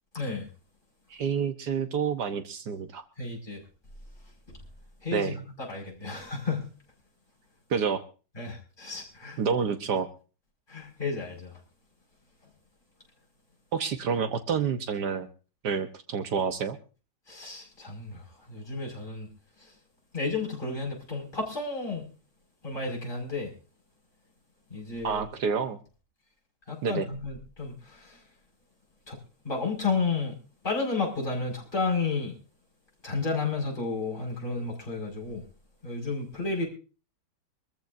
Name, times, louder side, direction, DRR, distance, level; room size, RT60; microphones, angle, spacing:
voice 1, 0.1-0.5 3.2-3.6 5.0-5.4 5.7-6.7 8.4-9.4 10.7-11.5 17.3-18.2 18.5-19.3 20.1-22.1 22.6-23.5 24.7-25.2 26.7-28.2 29.1-29.2 29.4-30.4 30.6-32.4 33.0-35.4 35.8-36.7, left 4 dB, 30° left, -2 dB, 5.8 m, -32 dB
voice 2, 1.1-3.0 5.1-5.4 7.7-8.0 9.4-10.1 13.7-15.3 15.6-16.8 25.0-25.8 26.8-27.1, right 6 dB, 75° right, 8 dB, 1.6 m, -28 dB
25.0 x 14.0 x 2.6 m, 0.35 s
omnidirectional pair, 1.8 m